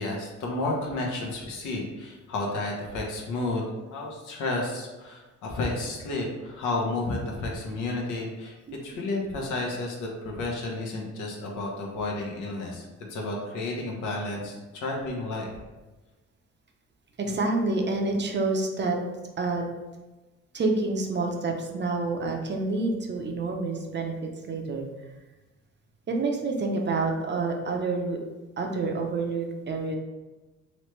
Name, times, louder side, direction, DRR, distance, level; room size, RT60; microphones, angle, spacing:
voice 1, 0.0-8.6 8.8-15.5, left 2 dB, 90° left, -1 dB, 0.9 m, -31 dB
voice 2, 8.7-9.0 17.2-19.0 19.4-19.7 20.5-24.9 26.1-28.2 28.6-30.0, right 3 dB, 35° right, 2 dB, 0.6 m, -28 dB
3.2 x 3.1 x 3.2 m, 1.2 s
cardioid pair, 90°, 30 cm